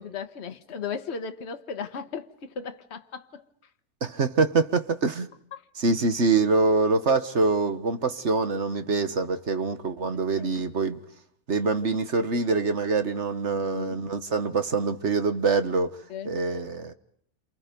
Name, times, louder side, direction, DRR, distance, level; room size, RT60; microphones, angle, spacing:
voice 1, 0.0-3.4 5.5-5.6 10.3-10.7 13.6-14.0 16.1-16.3, left 6 dB, 50° left, 1.5 m, -36 dB
voice 2, 4.0-5.3 5.8-11.0 11.5-15.9 16.2-16.9, right 3 dB, 55° right, 1.6 m, -25 dB
28.5 x 28.5 x 5.3 m
omnidirectional pair, 1.5 m